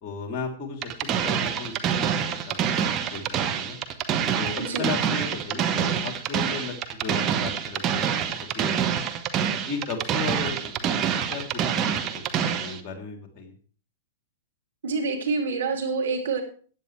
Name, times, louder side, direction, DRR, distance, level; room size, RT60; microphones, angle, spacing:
voice 1, 0.0-3.8 4.3-6.7 7.0-8.1 8.5-9.1 9.6-10.9 11.3-13.5, left 4 dB, 30° left, 3 dB, 3.2 m, -35 dB
sound 1, 0.8-12.8, right 8 dB, 30° right, 1.3 m, -26 dB
voice 2, 14.8-16.4, right 4 dB, 70° right, 1 dB, 2.9 m, -27 dB
15.5 x 9.8 x 3.3 m, 0.43 s
figure-of-eight pair, 105°, 0 cm